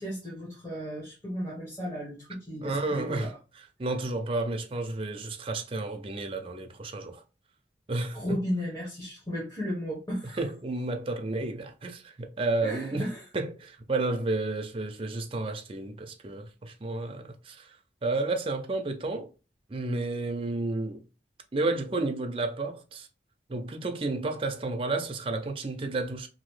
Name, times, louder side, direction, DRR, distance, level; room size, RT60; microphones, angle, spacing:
voice 1, 0.0-3.3 8.1-10.4 12.6-13.2, equal, 15° left, 1.1 m, -34 dB
voice 2, 2.6-3.3 3.8-7.2 7.9-8.2 10.4-13.1 13.3-17.7 18.0-19.3 19.7-21.0 21.5-23.1 23.5-26.3, right 2 dB, 30° right, 0.5 m, -31 dB
2.9 x 2.6 x 3.1 m
head